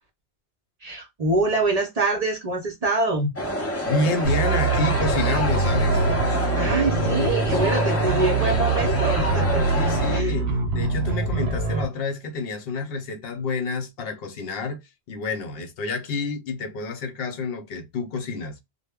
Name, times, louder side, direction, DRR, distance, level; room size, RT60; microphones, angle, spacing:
voice 1, 0.8-3.3 6.5-9.6 10.1-10.3, right 2 dB, 45° right, 0.6 m, -25 dB
sound 1, 3.4-10.2, left 1 dB, 25° left, 0.3 m, -26 dB
voice 2, 3.8-6.1 9.8-14.8 15.1-18.6, left 3 dB, 70° left, 0.8 m, -29 dB
sound 2, 4.2-11.9, right 4 dB, 85° right, 0.9 m, -24 dB
2.1 x 2.0 x 3.4 m
omnidirectional pair, 1.0 m